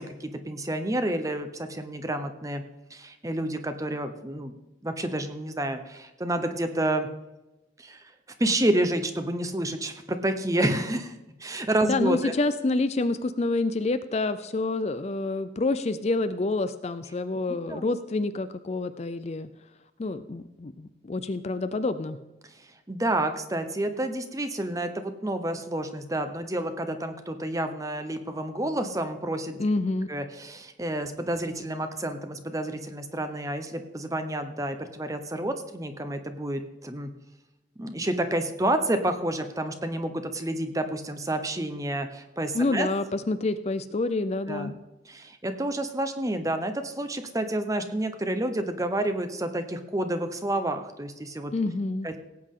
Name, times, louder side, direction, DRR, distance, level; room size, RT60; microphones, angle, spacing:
voice 1, 0.0-2.6 2.9-4.5 4.8-7.1 7.8-8.1 8.4-12.3 17.7-17.9 22.4-29.6 30.1-37.1 37.8-42.9 44.5-44.7 45.1-51.5 52.0-52.2, right 1 dB, 15° right, 8 dB, 0.8 m, -29 dB
voice 2, 11.8-19.5 20.0-22.2 29.6-30.1 42.5-44.7 51.5-52.1, left 2 dB, 35° left, 12 dB, 0.4 m, -28 dB
17.5 x 8.5 x 3.7 m, 1.0 s
head